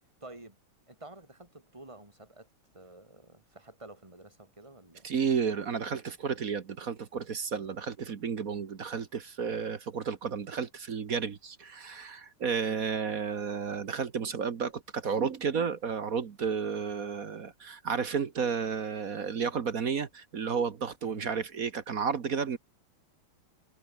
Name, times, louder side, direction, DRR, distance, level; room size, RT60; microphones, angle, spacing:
voice 1, 0.2-0.6 0.9-5.1 21.0-21.5, right 2 dB, 15° right, 3.1 m, -50 dB
voice 2, 5.0-22.6, right 6 dB, 45° right, 1.4 m, -32 dB
omnidirectional pair, 2.4 m